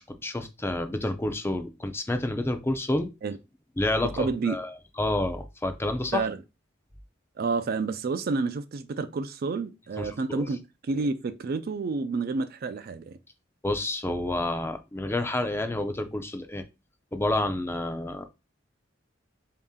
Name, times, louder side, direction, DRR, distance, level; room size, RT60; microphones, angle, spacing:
voice 1, 0.0-3.1 3.8-6.2 10.0-10.4 13.6-16.6 17.1-18.3, left 1 dB, 10° left, 0.4 m, -29 dB
voice 2, 4.0-4.6 6.1-6.4 7.4-13.2, right 4 dB, 50° right, 0.3 m, -29 dB
4.0 x 2.8 x 3.6 m
head